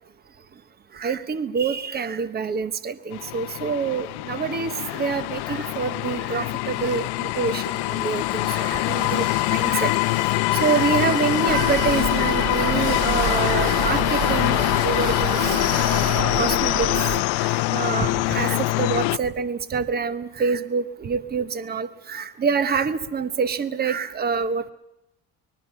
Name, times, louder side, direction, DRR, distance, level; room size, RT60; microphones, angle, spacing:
voice 1, 0.9-10.0 10.3-15.4 16.4-16.9 17.4-24.7, right 5 dB, 25° right, 13 dB, 1.0 m, -26 dB
sound 1, 3.1-19.2, left 21 dB, 80° left, 0.7 m, -24 dB
Tools, 6.7-16.2, right 8 dB, 65° right, 1.7 m, -38 dB
sound 2, 11.5-17.2, right 5 dB, 40° right, 1.6 m, -29 dB
25.5 x 21.0 x 5.6 m, 0.88 s
cardioid pair, 155°, 39 cm